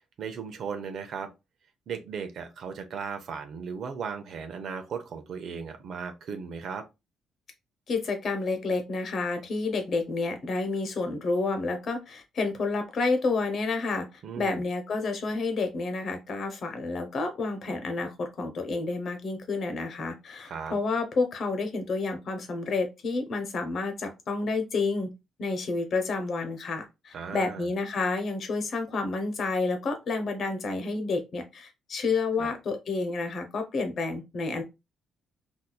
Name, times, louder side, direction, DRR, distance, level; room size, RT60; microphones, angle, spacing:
voice 1, 0.2-1.3 1.9-6.8 14.2-14.6 20.5-20.7 27.1-27.7 32.4-32.5, right 6 dB, 65° right, 0.6 m, -36 dB
voice 2, 7.9-14.0 14.3-25.1 25.4-34.6, left 3 dB, 55° left, 0.9 m, -30 dB
4.1 x 2.6 x 2.3 m
cardioid pair, 90°, 0 cm